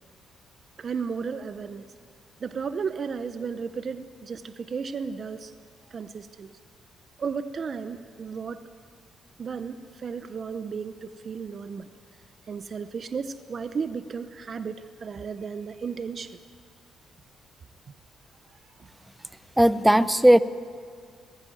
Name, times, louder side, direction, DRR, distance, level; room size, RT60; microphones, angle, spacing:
voice 1, 0.8-1.9 2.4-5.5 5.9-6.5 7.2-8.6 9.4-11.9 12.5-16.4 18.8-18.9, right 5 dB, 45° right, 11 dB, 0.8 m, -34 dB
voice 2, 19.6-20.4, right 1 dB, 5° right, 14 dB, 0.7 m, -17 dB
19.5 x 15.5 x 9.2 m, 2.2 s
cardioid pair, 90°, 0 cm